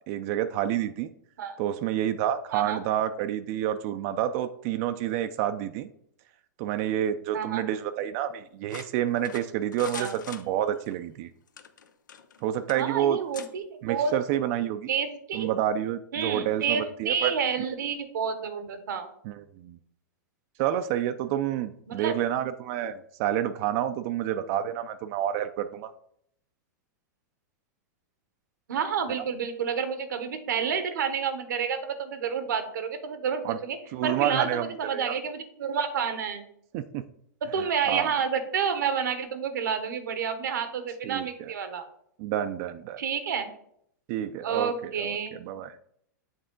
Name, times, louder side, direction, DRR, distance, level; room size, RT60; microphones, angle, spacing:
voice 1, 0.1-1.1 1.6-5.9 6.6-11.3 12.4-13.2 13.8-14.9 15.3-17.3 19.2-19.8 20.6-25.9 33.4-33.6 33.9-35.1 36.7-37.0 37.9-38.1 41.0-41.5 42.2-43.0 44.1-45.8, right 11 dB, 50° right, 10 dB, 0.4 m, -29 dB
sound 1, 8.7-10.9 11.5-12.4 12.7-12.8 13.3-13.5, left 7 dB, 90° left, 0.6 m, -43 dB
voice 2, 12.8-14.1 14.9-15.5 16.1-19.1 21.9-22.2 28.7-33.8 34.0-36.4 37.4-41.9 43.0-43.5 44.4-45.3, right 6 dB, 80° right, 9 dB, 1.0 m, -29 dB
7.9 x 3.5 x 3.8 m, 0.68 s
hypercardioid pair, 125°, 10 cm